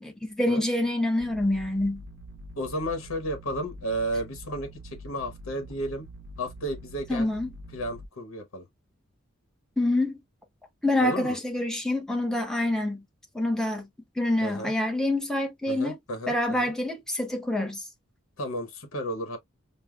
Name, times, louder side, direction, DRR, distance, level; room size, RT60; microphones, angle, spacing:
voice 1, 0.0-2.0 7.1-7.5 9.8-10.2 10.8-13.0 13.3-13.9 14.2-15.9 16.3-17.8, left 1 dB, 5° left, 0.8 m, -26 dB
sound 1, 1.2-8.1, equal, 70° right, 0.6 m, -45 dB
voice 2, 2.6-6.1 6.4-7.3 7.7-8.7 11.0-11.4 14.4-14.7 15.7-16.7 18.4-19.4, equal, 80° left, 1.0 m, -33 dB
5.4 x 2.0 x 2.2 m
head